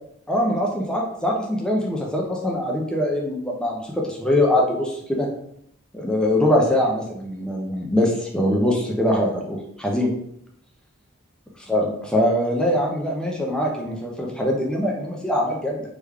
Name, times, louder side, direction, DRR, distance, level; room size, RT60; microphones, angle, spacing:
voice 1, 0.3-5.3 5.9-10.1 11.7-15.8, left 1 dB, 5° left, -1 dB, 0.4 m, -23 dB
3.2 x 2.2 x 3.4 m, 0.72 s
head